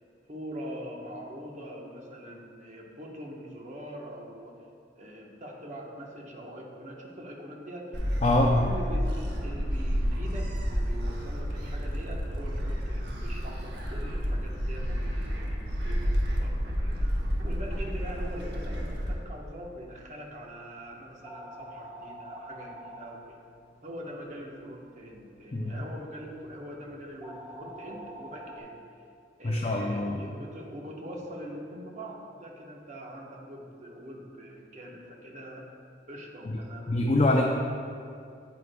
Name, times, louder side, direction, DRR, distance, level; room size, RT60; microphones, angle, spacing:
voice 1, 0.3-4.5 4.9-8.1 8.6-17.1 17.4-23.4 23.8-28.8 29.4-35.7 36.1-37.2, equal, 40° right, -1 dB, 1.1 m, -43 dB
Gull seagull, 7.9-19.1, equal, 65° right, 1.0 m, -30 dB
voice 2, 8.2-8.6 25.5-25.7 29.4-30.2 36.5-36.6 36.9-37.4, left 2 dB, 35° left, 0 dB, 0.5 m, -24 dB
sound 1, 18.3-28.6, right 1 dB, 10° right, 1.1 m, -49 dB
9.1 x 8.2 x 2.3 m, 2.4 s
head